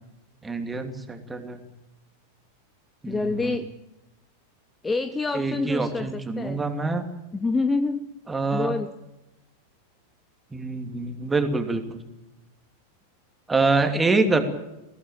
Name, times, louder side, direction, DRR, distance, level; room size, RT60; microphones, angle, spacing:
voice 1, 0.4-1.6 3.0-3.5 5.3-7.1 8.3-8.7 10.5-12.0 13.5-14.4, right 3 dB, 10° right, 6 dB, 2.8 m, -25 dB
voice 2, 3.0-3.7 4.8-6.7 7.3-8.1 8.5-8.9 14.3-14.4, left 3 dB, 10° left, 12 dB, 0.9 m, -27 dB
22.5 x 16.5 x 8.7 m, 0.96 s
figure-of-eight pair, 90°, 0 cm